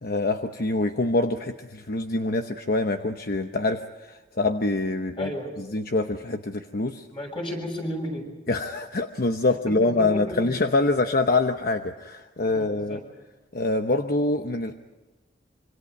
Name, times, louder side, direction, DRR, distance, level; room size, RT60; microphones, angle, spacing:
voice 1, 0.0-5.3 5.6-7.1 8.5-13.0 13.5-14.7, left 2 dB, 55° left, 6 dB, 1.0 m, -25 dB
voice 2, 5.2-5.5 7.1-8.3 9.7-10.5 12.5-13.0, equal, 30° left, 1 dB, 6.6 m, -33 dB
26.0 x 25.0 x 5.4 m, 1.2 s
head